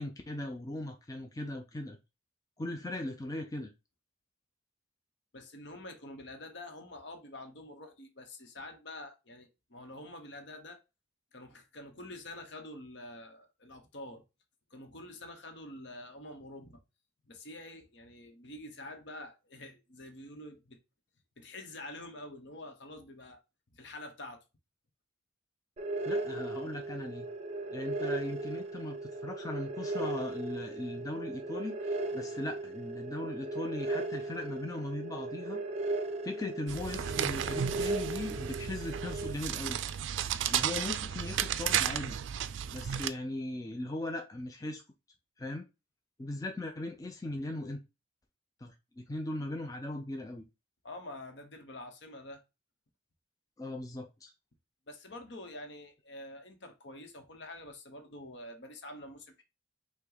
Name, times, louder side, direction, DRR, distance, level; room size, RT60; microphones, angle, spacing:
voice 1, 0.0-2.0 2.6-3.7 26.1-27.3 27.7-35.6 36.2-39.8 40.5-42.2 42.7-44.8 45.4-45.7 46.2-47.8 48.6-50.4 53.6-54.3, left 1 dB, 20° left, 0.5 m, -39 dB
voice 2, 5.3-10.8 11.3-14.2 14.7-16.8 17.2-20.8 21.4-23.4 23.7-24.4 50.8-52.4 54.9-59.4, left 1 dB, 65° left, 0.9 m, -47 dB
sound 1, 25.8-39.3, right 2 dB, 35° right, 0.6 m, -37 dB
sound 2, 36.7-43.1, right 9 dB, 75° right, 0.3 m, -33 dB
5.6 x 2.2 x 3.9 m
head